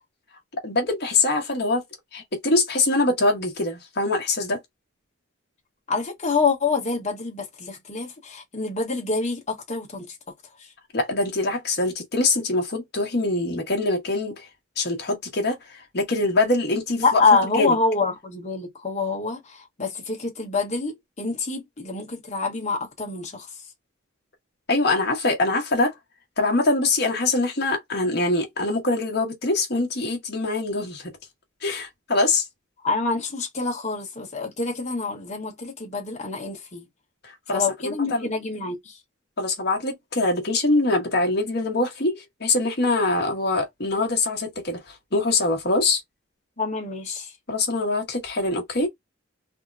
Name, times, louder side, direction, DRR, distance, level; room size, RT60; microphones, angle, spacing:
voice 1, 0.6-1.8 2.1-4.6 10.9-14.5 14.8-17.2 17.6-17.7 24.7-25.9 26.4-31.1 31.6-32.5 37.2-38.3 39.4-46.0 47.5-48.9, left 2 dB, 50° left, 1.2 m, -24 dB
voice 2, 5.9-10.1 17.0-23.5 32.8-36.9 37.5-39.0 46.6-47.3, left 4 dB, 35° left, 1.2 m, -26 dB
3.6 x 2.1 x 2.6 m
head